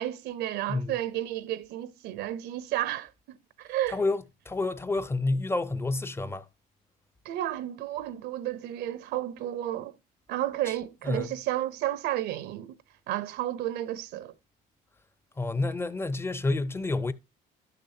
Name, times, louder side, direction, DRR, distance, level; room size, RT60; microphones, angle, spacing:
voice 1, 0.0-4.0 7.2-10.0 10.3-12.8 13.1-14.3, right 13 dB, 80° right, 0.6 m, -32 dB
voice 2, 3.9-6.5 10.7-10.8 11.0-11.3 15.4-17.1, left 2 dB, 15° left, 0.5 m, -29 dB
12.0 x 6.6 x 2.7 m
cardioid pair, 110°, 17 cm